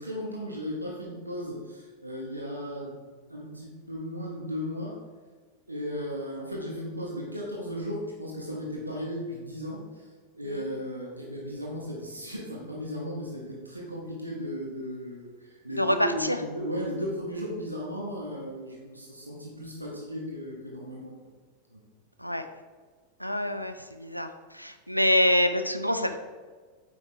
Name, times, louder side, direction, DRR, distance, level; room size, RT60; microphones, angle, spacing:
voice 1, 0.0-5.0 5.7-21.2 21.7-21.8, equal, 85° right, -2 dB, 1.3 m, -36 dB
voice 2, 23.2-24.3 24.5-26.2, left 1 dB, 90° left, 8 dB, 0.6 m, -26 dB
9.1 x 5.8 x 3.4 m, 1.5 s
figure-of-eight pair, 90°, 0 cm